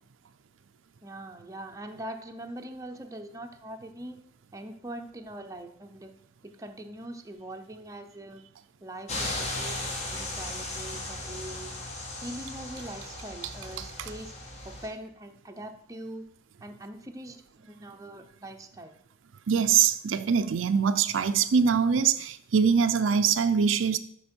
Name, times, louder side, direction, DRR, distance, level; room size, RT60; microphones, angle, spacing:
voice 1, 1.0-4.2 4.5-6.1 6.4-8.4 8.8-11.7 12.2-14.3 14.6-16.3 16.6-18.9, right 1 dB, 15° right, 0.7 m, -42 dB
sound 1, 9.1-14.9, left 2 dB, 35° left, 1.4 m, -36 dB
voice 2, 19.5-24.0, right 6 dB, 85° right, 0.5 m, -23 dB
11.5 x 4.5 x 4.5 m
head